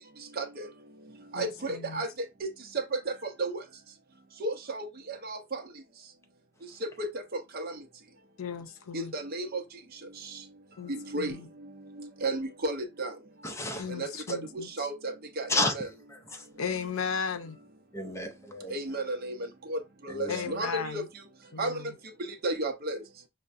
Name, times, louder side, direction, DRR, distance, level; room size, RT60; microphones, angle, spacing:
voice 1, 0.4-0.7 1.3-2.1 2.4-2.5 3.4-3.5 4.4-4.9 5.2-5.6 6.8-7.1 7.5-7.7 8.9-9.6 10.9-11.3 12.0-13.1 14.0-14.1 14.5-15.9 18.7-19.3 19.7-19.8 20.0-21.0 21.6-21.7 22.4-23.0, right 2 dB, 45° right, 0.6 m, -32 dB
voice 2, 1.3-2.1 8.4-9.1 10.8-10.9 11.2-11.5 13.7-14.9 16.6-17.6 20.3-21.1 21.5-21.9, left 6 dB, 80° left, 0.6 m, -36 dB
voice 3, 13.4-13.9 15.5-15.8 16.1-16.5 17.9-18.8 20.1-20.6, left 2 dB, 15° left, 0.5 m, -32 dB
5.5 x 2.1 x 2.5 m
head